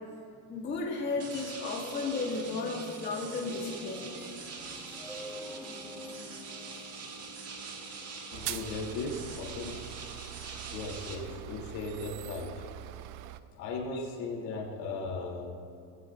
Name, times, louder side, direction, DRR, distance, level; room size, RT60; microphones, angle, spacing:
voice 1, 0.5-4.0, left 3 dB, 25° left, -4 dB, 1.9 m, -34 dB
sound 1, 0.7-10.0, equal, 5° right, 1.2 m, -48 dB
sound 2, 1.2-11.2, right 4 dB, 35° right, 1.8 m, -44 dB
voice 2, 8.3-9.8 10.7-12.5 13.6-15.5, left 3 dB, 60° left, -1 dB, 3.0 m, -37 dB
sound 3, 8.3-13.4, right 14 dB, 85° right, 0.8 m, -43 dB
20.5 x 16.0 x 2.5 m, 2.6 s
cardioid pair, 160°, 44 cm